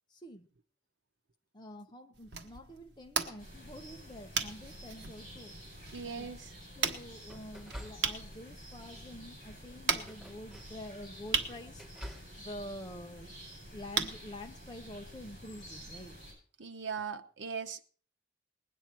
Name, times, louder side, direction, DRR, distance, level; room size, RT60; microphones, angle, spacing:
voice 1, 0.1-0.5 1.5-5.6 6.0-6.3 6.7-11.9 12.4-13.3 13.7-16.2, left 1 dB, 25° left, 1.1 m, -47 dB
sound 1, 2.1-15.4, right 6 dB, 60° right, 1.3 m, -39 dB
sound 2, 3.4-16.3, equal, 45° left, 7.7 m, -50 dB
sound 3, 5.9-6.4 7.2-8.5 8.9-9.2 9.8-10.9 11.3-12.4, equal, 5° right, 2.6 m, -49 dB
voice 2, 5.9-6.4 16.6-17.9, right 6 dB, 80° right, 0.9 m, -39 dB
20.5 x 8.9 x 4.6 m
head